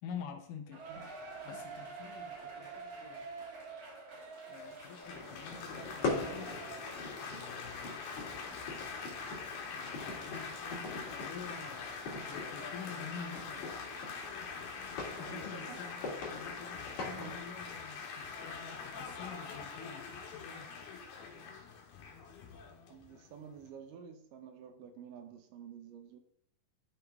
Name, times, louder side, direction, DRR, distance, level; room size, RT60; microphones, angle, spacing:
voice 1, 0.0-1.1 1.4-3.3 4.5-6.6 7.2-8.0 9.7-11.9 12.3-13.7 15.2-20.7, left 7 dB, 75° left, 2.3 m, -48 dB
Cheering, 0.7-8.5 8.9-9.0 9.6-9.7, right 4 dB, 50° right, 2.3 m, -48 dB
Laughter / Applause / Chatter, 4.5-23.7, left 5 dB, 90° left, 3.1 m, -44 dB
sound 1, 5.0-17.4, left 3 dB, 55° left, 3.0 m, -43 dB
voice 2, 15.2-15.8 17.2-17.4 22.9-26.2, right 7 dB, 75° right, 2.3 m, -50 dB
11.5 x 5.2 x 3.5 m
omnidirectional pair, 4.1 m